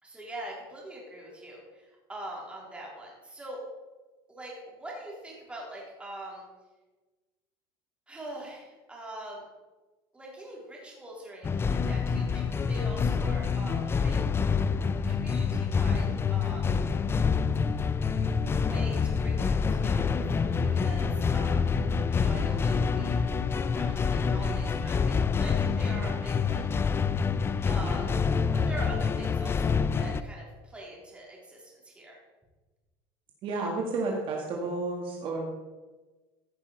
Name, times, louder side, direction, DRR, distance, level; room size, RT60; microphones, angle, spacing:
voice 1, 0.0-3.6 4.3-6.4 8.1-9.4 10.1-14.2 15.0-16.7 18.6-21.7 22.1-26.7 27.7-28.2 28.5-32.2, right 1 dB, 10° right, -3 dB, 3.6 m, -43 dB
sound 1, 11.4-30.2, left 5 dB, 20° left, 0.5 m, -27 dB
voice 2, 33.4-35.5, right 3 dB, 50° right, 0 dB, 1.8 m, -31 dB
14.5 x 6.2 x 4.5 m, 1.2 s
supercardioid pair, 125°, 12 cm